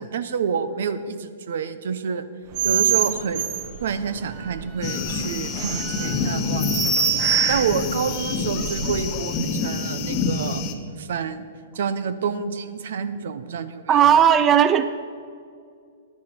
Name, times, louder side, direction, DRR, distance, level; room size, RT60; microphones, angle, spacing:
voice 1, 0.0-2.3 2.6-3.4 3.8-10.6 11.0-11.5 11.7-13.9, right 6 dB, 70° right, 13 dB, 0.7 m, -28 dB
sound 1, 2.5-9.2, right 9 dB, 40° right, 1.1 m, -26 dB
sound 2, 4.8-10.7, left 5 dB, 30° left, 1.1 m, -27 dB
voice 2, 13.9-14.8, right 9 dB, 25° right, 12 dB, 0.4 m, -16 dB
10.5 x 10.5 x 4.4 m, 2.3 s
hypercardioid pair, 140°, 0 cm